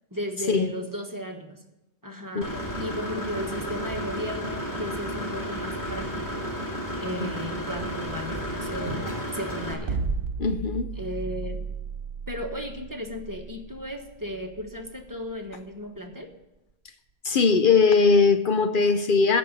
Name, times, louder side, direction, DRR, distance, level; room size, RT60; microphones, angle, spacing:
voice 1, 0.1-1.6 2.0-6.5 7.0-10.0 10.9-11.7 12.3-16.3, equal, 20° right, 1.3 m, -35 dB
Engine / Mechanisms, 2.4-9.7, equal, 20° left, 2.4 m, -32 dB
sound 1, 9.9-16.0, right 4 dB, 65° right, 0.9 m, -34 dB
voice 2, 10.4-10.9 17.2-19.4, left 4 dB, 60° left, 0.8 m, -20 dB
14.0 x 5.4 x 9.1 m
omnidirectional pair, 1.0 m